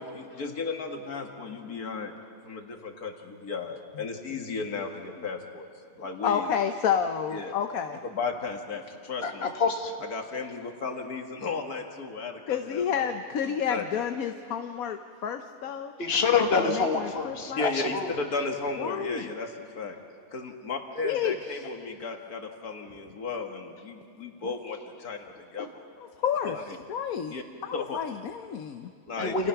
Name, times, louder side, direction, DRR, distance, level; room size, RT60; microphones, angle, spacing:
voice 1, 0.0-2.1 2.4-5.7 6.0-6.5 7.3-7.5 8.1-9.5 10.1-13.1 13.4-13.8 17.5-20.0 20.3-25.8 26.4-26.8 27.3-27.4 27.7-28.0 29.1-29.5, left 4 dB, 90° left, 3 dB, 2.4 m, -35 dB
voice 2, 6.2-8.0 12.5-15.9 16.6-17.9 18.8-19.3 21.0-21.7 26.0-26.6 26.9-27.4 27.6-28.9, left 8 dB, 75° left, 7 dB, 1.3 m, -30 dB
voice 3, 9.2-9.9 16.0-18.1 29.2-29.5, left 4 dB, 45° left, 4 dB, 1.9 m, -26 dB
29.5 x 28.0 x 5.9 m, 2.3 s
omnidirectional pair, 1.5 m